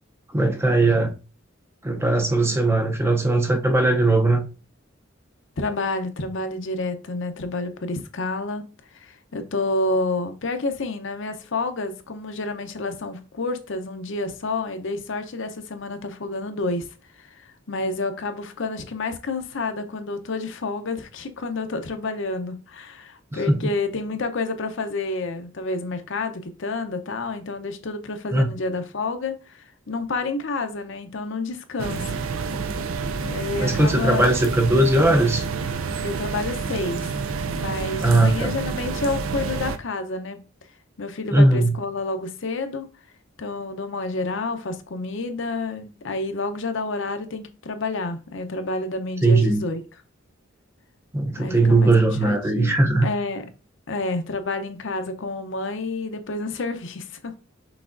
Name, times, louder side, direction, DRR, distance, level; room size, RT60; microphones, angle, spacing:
voice 1, 0.3-1.2 1.8-4.5 23.3-23.6 28.3-28.5 33.6-35.4 38.0-38.5 41.3-41.8 49.2-49.6 51.1-53.1, right 2 dB, 10° right, 0.5 m, -19 dB
voice 2, 5.6-8.7 9.0-16.9 17.2-32.0 33.2-34.3 36.0-37.1 37.5-40.4 41.0-42.9 43.4-49.8 51.4-51.9 52.2-53.4 53.9-57.4, left 3 dB, 65° left, 0.6 m, -29 dB
sound 1, 31.8-39.8, right 5 dB, 90° right, 0.5 m, -29 dB
6.0 x 3.4 x 2.5 m
head